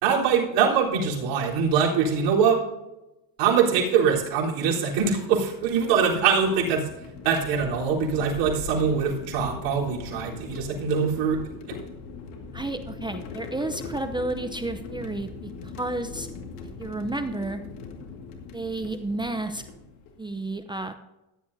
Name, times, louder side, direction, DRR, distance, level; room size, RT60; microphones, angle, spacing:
voice 1, 0.0-2.6 3.4-6.8 7.2-11.4 11.7-11.8, right 6 dB, 75° right, -4 dB, 3.9 m, -23 dB
sound 1, 5.4-20.4, left 4 dB, 80° left, 2.1 m, -40 dB
voice 2, 12.5-16.3 16.8-17.6 18.5-19.6 20.2-20.9, right 2 dB, 10° right, 7 dB, 0.6 m, -31 dB
14.5 x 11.0 x 2.7 m, 0.95 s
supercardioid pair, 100°, 43 cm